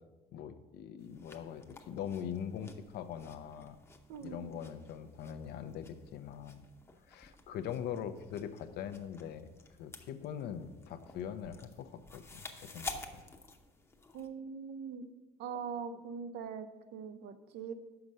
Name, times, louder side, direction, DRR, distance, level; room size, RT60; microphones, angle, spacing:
voice 1, 0.3-3.8 4.2-6.6 7.1-9.5 9.8-13.0, left 8 dB, 75° left, 10 dB, 0.6 m, -42 dB
sound 1, 1.0-14.3, left 3 dB, 15° left, 0.7 m, -51 dB
voice 2, 4.1-4.5 14.1-15.0 15.4-17.7, right 6 dB, 80° right, 11 dB, 0.6 m, -42 dB
5.8 x 5.4 x 6.2 m, 1.2 s
cardioid pair, 110°, 17 cm